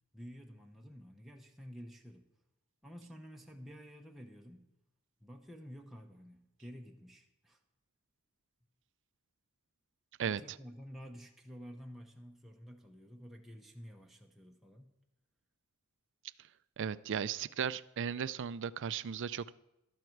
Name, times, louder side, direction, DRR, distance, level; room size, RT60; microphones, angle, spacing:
voice 1, 0.1-2.3 2.8-4.7 5.2-7.6 10.2-14.9, equal, ahead, 0 dB, 0.9 m, -51 dB
voice 2, 16.8-19.5, right 7 dB, 55° right, 17 dB, 0.4 m, -36 dB
12.5 x 12.5 x 4.6 m, 0.91 s
head